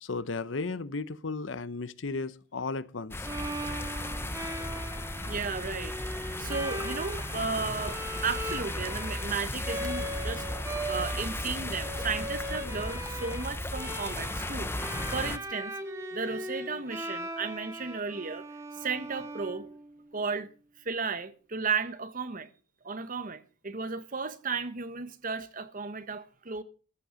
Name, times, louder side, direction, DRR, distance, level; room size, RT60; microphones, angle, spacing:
voice 1, 0.0-3.3, left 3 dB, 85° left, 0.9 m, -35 dB
sound 1, 3.1-15.4, left 1 dB, 15° left, 0.8 m, -35 dB
Bowed string instrument, 3.2-20.1, right 1 dB, 15° right, 1.7 m, -39 dB
voice 2, 4.0-4.5 5.2-15.8 16.1-18.4 18.8-19.7 20.1-20.5 20.8-22.5 22.8-26.6, right 4 dB, 45° right, 1.3 m, -34 dB
14.5 x 10.5 x 6.3 m
head